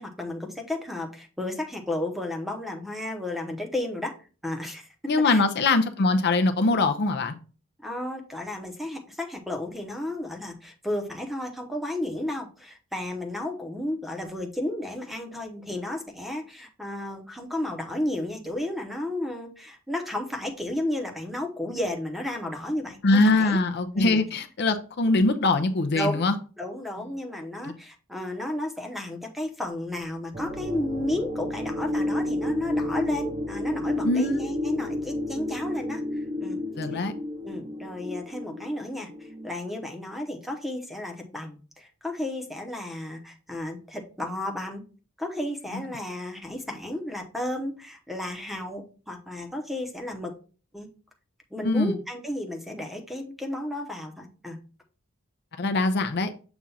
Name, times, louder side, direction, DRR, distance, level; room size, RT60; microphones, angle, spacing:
voice 1, 0.0-4.1 4.4-4.9 5.2-5.4 7.8-23.6 23.9-24.2 25.9-26.2 26.6-36.6 36.9-37.0 37.4-44.8 45.2-50.3 50.7-50.9 51.5-54.6, left 1 dB, ahead, 0.8 m, -33 dB
voice 2, 5.1-7.4 23.0-26.3 27.6-27.7 34.0-34.4 36.8-37.1 51.6-51.9 55.6-56.3, left 2 dB, 50° left, 0.6 m, -22 dB
sound 1, 30.3-39.5, left 1 dB, 30° right, 0.8 m, -31 dB
7.0 x 2.5 x 5.5 m
head